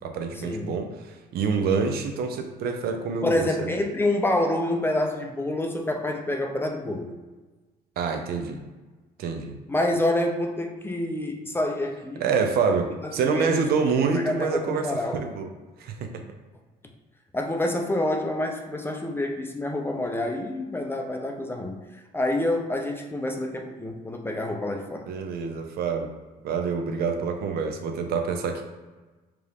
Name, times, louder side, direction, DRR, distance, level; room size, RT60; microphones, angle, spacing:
voice 1, 0.0-3.8 8.0-8.6 9.2-9.6 12.2-15.5 15.8-16.2 25.1-26.1 26.4-28.6, right 5 dB, 65° right, 5 dB, 0.6 m, -27 dB
voice 2, 3.2-7.1 9.7-12.2 13.0-13.7 14.2-15.2 17.3-21.8 22.1-25.1, left 1 dB, 15° left, 2 dB, 0.5 m, -27 dB
4.6 x 2.5 x 3.5 m, 1.2 s
cardioid pair, 110°, 17 cm